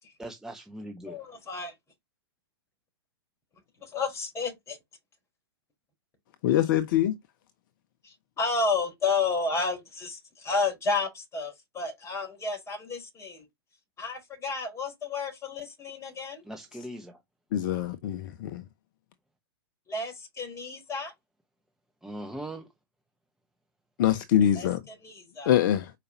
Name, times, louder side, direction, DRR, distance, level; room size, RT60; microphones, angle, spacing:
voice 1, 0.2-1.2 16.4-17.2 22.0-22.7, right 1 dB, 5° right, 1.1 m, -40 dB
voice 2, 1.1-1.7 3.8-4.8 8.0-13.4 14.0-16.4 19.9-21.1 24.6-25.5, left 4 dB, 20° left, 4.7 m, -31 dB
voice 3, 6.4-7.2 17.5-18.6 24.0-24.8 25.5-25.9, left 11 dB, 50° left, 0.8 m, -24 dB
6.7 x 5.0 x 2.8 m
hypercardioid pair, 110°, 13 cm